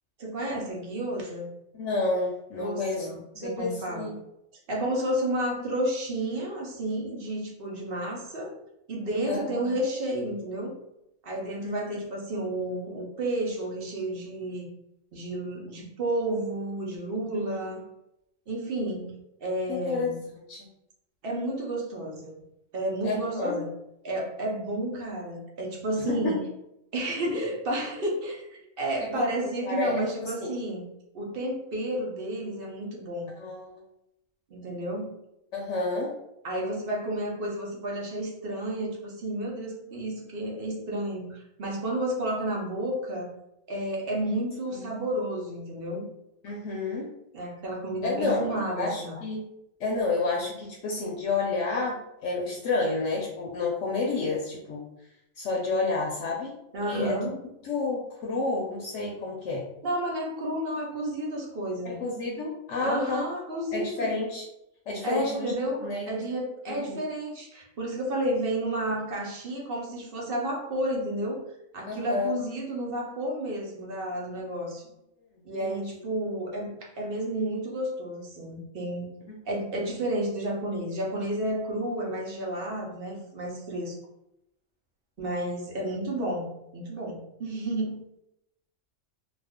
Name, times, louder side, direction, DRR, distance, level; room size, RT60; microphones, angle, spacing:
voice 1, 0.2-1.5 2.6-4.1 4.7-8.5 8.9-10.7 11.2-14.7 15.1-17.8 18.5-20.2 21.2-22.3 22.7-23.7 24.0-26.5 26.9-30.8 31.1-33.3 34.5-35.2 36.4-43.3 43.7-46.1 47.3-49.2 56.7-57.4 59.8-62.0 62.8-64.1 65.0-71.4 71.7-74.9 75.4-79.1 79.5-84.0 85.2-86.5 86.7-88.0, right 1 dB, 55° right, -2 dB, 0.8 m, -31 dB
voice 2, 1.7-3.1 3.4-4.2 9.3-9.9 11.6-11.8 17.5-17.7 19.7-20.1 20.5-20.7 23.0-23.6 26.1-26.3 29.1-29.2 29.6-30.5 33.4-33.8 35.5-36.1 44.7-44.9 46.4-47.1 48.0-48.5 48.8-49.4 49.8-54.8 55.4-56.5 56.9-57.2 57.6-59.6 61.9-63.3 63.7-64.4 64.9-65.5 65.8-66.1 66.7-67.0 71.9-72.3 75.6-75.8, left 3 dB, 70° left, -2 dB, 0.9 m, -30 dB
2.5 x 2.3 x 3.5 m, 0.84 s
omnidirectional pair, 1.3 m